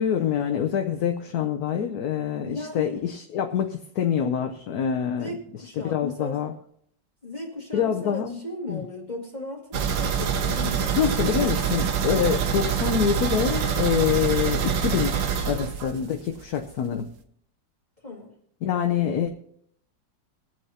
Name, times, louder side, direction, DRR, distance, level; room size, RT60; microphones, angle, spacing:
voice 1, 0.0-6.5 7.7-8.4 8.7-8.9 11.0-17.1 18.6-19.3, left 8 dB, 65° left, 5 dB, 1.2 m, -26 dB
voice 2, 2.4-3.0 5.1-6.4 7.2-11.0 11.3-11.5 18.0-18.3, left 2 dB, 25° left, -3 dB, 2.1 m, -36 dB
sound 1, 9.7-16.4 16.7-16.8 17.2-17.3, right 7 dB, 85° right, 1.7 m, -25 dB
22.5 x 8.1 x 2.9 m, 0.67 s
omnidirectional pair, 2.0 m